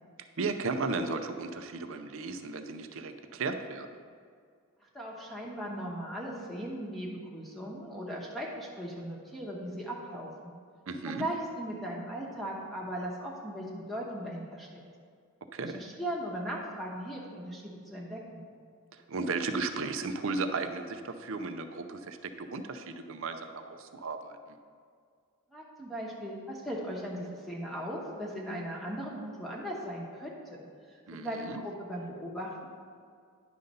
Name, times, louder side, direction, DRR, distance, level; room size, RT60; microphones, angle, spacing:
voice 1, 0.4-3.9 10.9-11.3 15.5-15.8 19.1-24.4 31.1-31.6, right 3 dB, 65° right, 8 dB, 0.5 m, -35 dB
voice 2, 4.9-10.5 11.0-14.8 15.6-18.4 25.5-32.7, equal, ahead, -4 dB, 1.0 m, -38 dB
10.5 x 3.9 x 5.4 m, 2.1 s
head